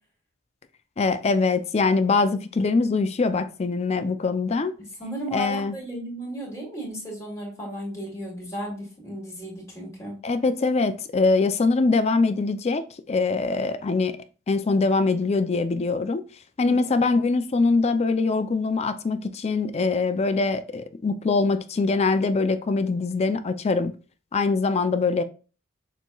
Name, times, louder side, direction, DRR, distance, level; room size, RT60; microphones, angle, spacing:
voice 1, 1.0-4.7 5.3-5.7 10.2-14.1 14.5-16.2 16.6-23.9 24.3-25.2, left 3 dB, 30° left, 0.4 m, -23 dB
voice 2, 5.0-10.2 16.6-17.0, equal, 15° left, 2.4 m, -35 dB
6.7 x 3.0 x 2.3 m
head